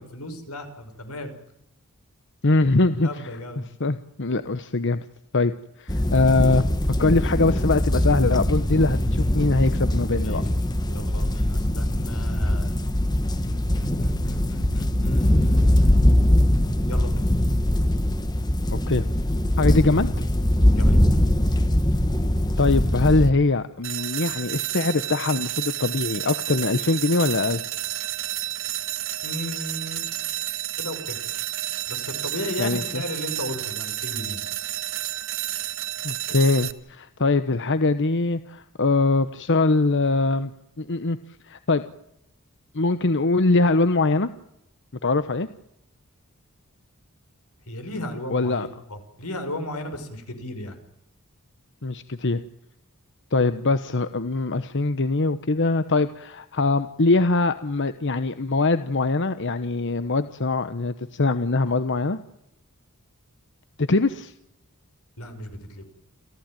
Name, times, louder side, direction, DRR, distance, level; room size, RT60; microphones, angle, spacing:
voice 1, 0.0-1.3 3.0-3.6 10.2-10.5 10.9-12.7 13.4-16.0 16.9-17.1 20.7-21.0 29.2-30.1 30.8-31.2 31.9-34.6 47.7-50.8 61.7-61.8 65.2-65.9, left 1 dB, 85° left, 8 dB, 6.0 m, -35 dB
voice 2, 2.4-3.2 3.6-5.0 5.3-5.5 5.8-6.7 7.0-10.4 18.9-19.0 19.6-20.1 22.6-27.6 32.6-33.0 36.0-40.5 40.8-41.2 41.4-41.8 42.7-44.3 45.0-45.5 48.3-48.7 51.8-52.4 53.3-62.2 63.8-64.3, left 3 dB, 55° left, 11 dB, 1.0 m, -22 dB
sound 1, 5.9-23.3, left 1 dB, 20° left, 1.6 m, -22 dB
sound 2, 23.8-36.7, right 13 dB, 60° right, 1.4 m, -31 dB
29.0 x 15.0 x 9.1 m, 0.80 s
head